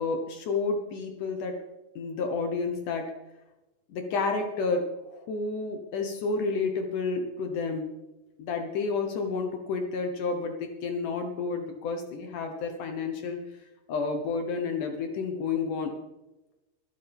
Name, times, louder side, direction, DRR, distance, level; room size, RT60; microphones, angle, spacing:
voice 1, 0.0-1.6 2.0-3.1 3.9-7.9 8.4-13.4 13.9-16.0, left 4 dB, 75° left, 4 dB, 1.9 m, -30 dB
23.0 x 9.5 x 3.5 m, 1.0 s
omnidirectional pair, 5.2 m